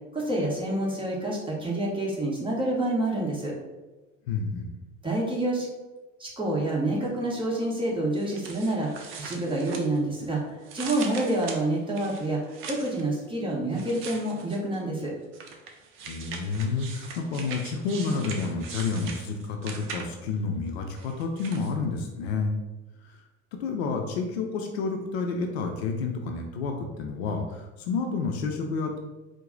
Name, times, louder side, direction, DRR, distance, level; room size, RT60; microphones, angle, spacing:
voice 1, 0.1-3.5 5.0-5.7 6.2-12.4 12.7-15.1, right 1 dB, 15° right, -3 dB, 1.1 m, -28 dB
voice 2, 4.3-4.7 16.0-22.6 23.1-23.2 23.5-29.0, left 4 dB, 55° left, 3 dB, 0.6 m, -30 dB
sound 1, 8.1-10.3 10.6-13.0 13.7-14.8 15.3-20.3 21.0-21.7, right 5 dB, 35° right, 0.6 m, -41 dB
4.6 x 2.1 x 3.8 m, 1.1 s
figure-of-eight pair, 70°, 37 cm